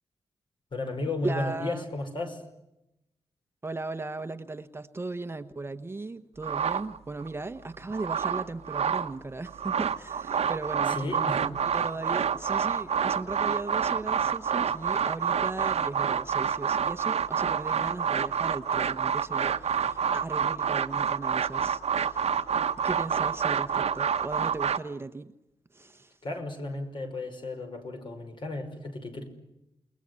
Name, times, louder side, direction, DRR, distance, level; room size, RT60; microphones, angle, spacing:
voice 1, 0.7-2.4 10.9-11.5 26.2-29.4, left 2 dB, 50° left, 5 dB, 5.5 m, -34 dB
voice 2, 1.2-1.8 3.6-22.4 22.8-25.3 25.7-26.2, right 3 dB, 20° right, 9 dB, 1.0 m, -37 dB
sound 1, 6.4-7.3 7.7-9.1 9.5-24.8, right 7 dB, 75° right, 1.1 m, -28 dB
29.0 x 21.0 x 9.7 m, 0.89 s
wide cardioid pair, 160°, 11 cm